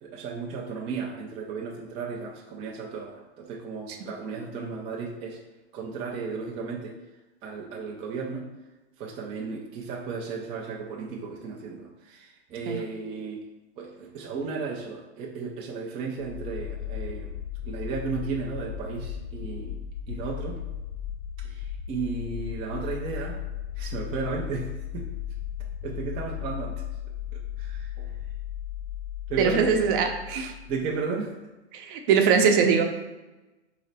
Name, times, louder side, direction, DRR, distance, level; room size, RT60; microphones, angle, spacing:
voice 1, 0.0-5.4 5.7-6.9 7.4-8.4 9.0-13.4 13.8-17.3 17.6-19.8 20.1-20.6 21.4-23.4 23.8-25.0 25.8-26.7 27.6-28.1 29.3-29.7 30.7-31.3, right 5 dB, 15° right, -2 dB, 0.4 m, -34 dB
sound 1, 16.2-31.0, left 9 dB, 55° left, 0.5 m, -36 dB
voice 2, 29.4-30.5 31.7-32.8, right 6 dB, 50° right, 4 dB, 0.7 m, -22 dB
4.0 x 3.2 x 3.9 m, 1.1 s
hypercardioid pair, 140°, 34 cm